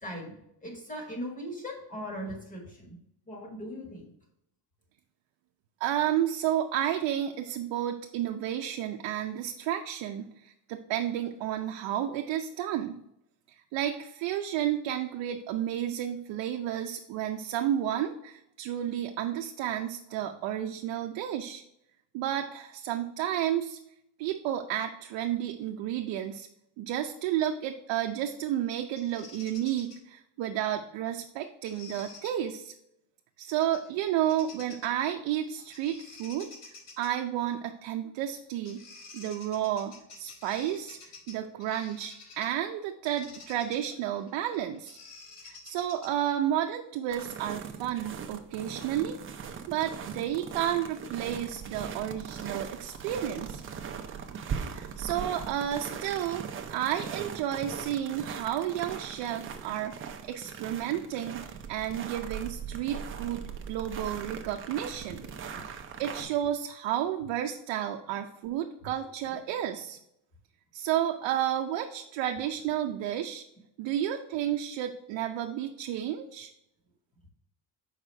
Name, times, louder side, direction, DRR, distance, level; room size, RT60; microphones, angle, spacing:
voice 1, 0.0-0.3 0.6-2.9 3.3-4.1 65.5-65.6 69.3-69.4, equal, 20° left, 1 dB, 1.6 m, -39 dB
voice 2, 5.8-13.0 13.7-21.6 22.1-23.8 24.2-26.5 26.8-32.7 33.4-36.5 37.0-38.8 39.1-41.0 41.3-45.0 45.4-49.2 49.7-53.6 54.6-56.4 56.7-61.4 61.7-65.2 65.6-70.0 70.7-73.4 73.8-76.5, right 11 dB, 80° right, 3 dB, 0.6 m, -31 dB
Bird vocalization bird call bird song, 29.0-30.0 31.6-32.3 33.6-33.9 34.2-35.0 35.7-37.1 38.3-38.4 38.7-42.6 43.0-46.3, left 4 dB, 80° left, 1.6 m, -49 dB
sound 1, 47.1-66.3, right 7 dB, 30° right, 0.5 m, -40 dB
6.2 x 4.9 x 3.3 m, 0.80 s
cardioid pair, 150°, 43 cm